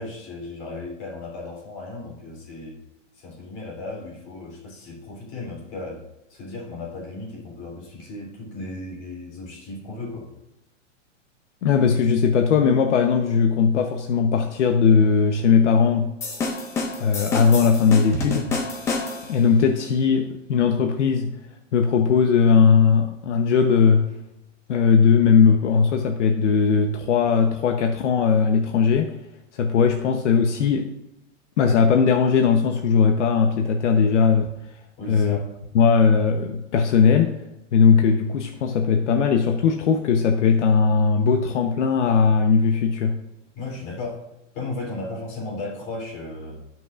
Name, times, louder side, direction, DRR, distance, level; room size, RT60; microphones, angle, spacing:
voice 1, 0.0-2.8 3.2-6.0 6.3-10.3 35.0-35.5 43.5-44.2 44.5-46.6, left 2 dB, 30° left, -2 dB, 3.3 m, -35 dB
voice 2, 11.6-16.1 17.0-18.5 19.3-21.3 21.7-24.1 24.7-29.1 29.5-30.9 31.6-34.5 35.1-35.4 35.7-37.3 37.7-43.2, left 6 dB, 70° left, 4 dB, 0.9 m, -19 dB
sound 1, 16.2-19.4, left 3 dB, 10° left, 0.4 m, -28 dB
17.5 x 6.1 x 2.5 m, 0.94 s
hypercardioid pair, 150°, 37 cm